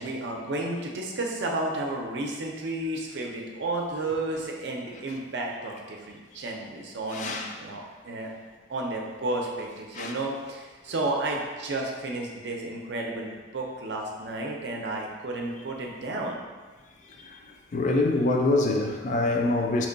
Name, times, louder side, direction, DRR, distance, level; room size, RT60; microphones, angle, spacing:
voice 1, 0.0-8.3 8.7-16.4, right 2 dB, 65° right, 0.5 m, -32 dB
voice 2, 7.1-7.5 9.9-10.2 17.2-17.4 17.7-19.9, left 2 dB, 40° left, 0.3 m, -25 dB
2.9 x 2.2 x 3.8 m
head